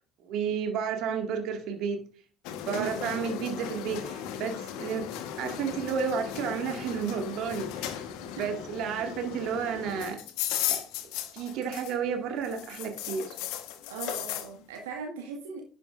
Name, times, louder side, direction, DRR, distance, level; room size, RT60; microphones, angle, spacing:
voice 1, 0.2-2.0 2.7-5.1 5.4-10.2 10.7-10.8 11.3-13.3, right 6 dB, 60° right, 5 dB, 2.0 m, -32 dB
sound 1, 2.4-12.1 12.4-14.5, left 11 dB, 70° left, 1.2 m, -36 dB
voice 2, 2.6-3.1 8.3-8.5 13.9-15.6, right 5 dB, 80° right, 1 dB, 1.7 m, -39 dB
11.0 x 9.8 x 2.5 m, 0.41 s
hypercardioid pair, 60°, 0 cm